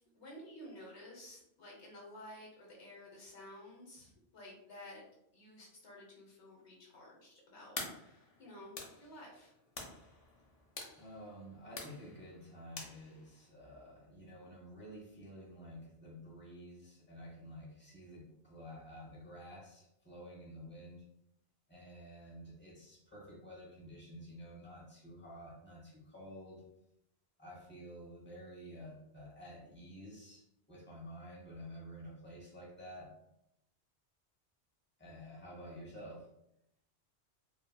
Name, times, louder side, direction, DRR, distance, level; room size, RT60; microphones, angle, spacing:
voice 1, 0.1-5.0 5.3-9.5, left 1 dB, 85° left, -3 dB, 1.2 m, -53 dB
sound 1, 7.8-13.5, left 3 dB, 45° left, 0.5 m, -49 dB
voice 2, 10.9-21.0 21.7-26.6 27.4-33.1 35.0-36.3, equal, 10° left, -3 dB, 0.7 m, -51 dB
2.8 x 2.7 x 2.3 m, 0.80 s
omnidirectional pair, 1.1 m